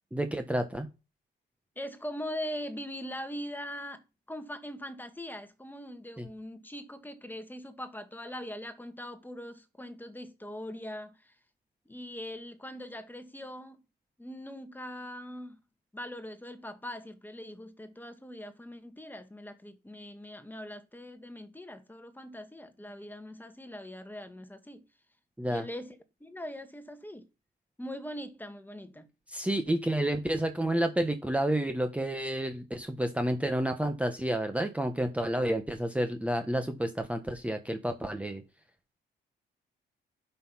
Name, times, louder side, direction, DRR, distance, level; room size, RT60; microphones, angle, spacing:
voice 1, 0.1-0.9 6.2-6.3 25.4-25.6 29.3-38.4, right 1 dB, 5° right, 1.4 m, -30 dB
voice 2, 1.8-4.0 4.3-11.4 11.9-13.8 14.2-15.6 15.9-24.8 25.5-27.3 27.8-29.1, equal, 10° left, 1.8 m, -41 dB
11.0 x 6.0 x 5.8 m
cardioid pair, 90°, 20 cm